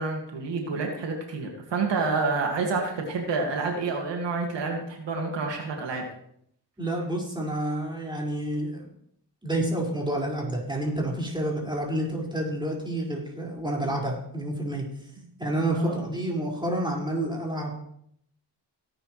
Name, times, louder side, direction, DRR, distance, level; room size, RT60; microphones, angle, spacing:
voice 1, 0.0-6.0 15.2-15.3 15.7-16.0, right 4 dB, 80° right, 1 dB, 2.3 m, -28 dB
voice 2, 6.8-8.9 9.4-14.9 15.4-17.7, right 1 dB, 10° right, -3 dB, 5.4 m, -29 dB
18.0 x 10.0 x 3.3 m, 0.69 s
cardioid pair, 80°, 42 cm